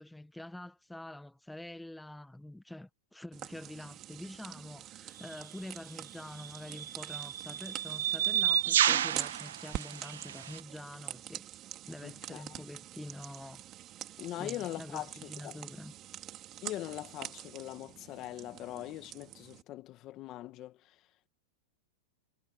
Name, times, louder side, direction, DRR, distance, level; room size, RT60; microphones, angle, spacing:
voice 1, 0.0-11.4 11.9-13.6 14.3-15.9, left 1 dB, 5° left, 1.4 m, -46 dB
sound 1, 3.3-19.6, right 13 dB, 30° right, 2.5 m, -45 dB
sound 2, 5.2-5.4 6.4-10.6, right 11 dB, 85° right, 1.4 m, -31 dB
voice 2, 12.0-12.6 14.2-15.6 16.6-21.0, left 15 dB, 35° left, 1.8 m, -42 dB
hypercardioid pair, 140°, 0 cm